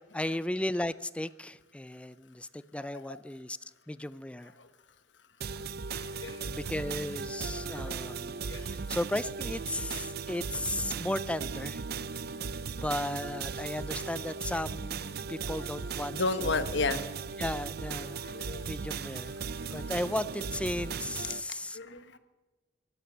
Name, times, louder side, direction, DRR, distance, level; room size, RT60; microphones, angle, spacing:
voice 1, 0.1-3.6 3.9-4.5 6.1-11.8 12.8-16.5 17.4-19.3 19.7-21.8, left 1 dB, 5° left, 17 dB, 0.4 m, -35 dB
sound 1, 5.4-21.4, right 5 dB, 60° right, 0.5 m, -37 dB
voice 2, 6.0-6.5 7.4-8.1 8.5-8.8 9.9-10.2 15.1-15.6 16.1-17.0 18.2-18.7 19.7-19.8 21.7-22.2, left 3 dB, 75° left, 11 dB, 1.2 m, -35 dB
16.0 x 11.5 x 6.9 m, 1.2 s
head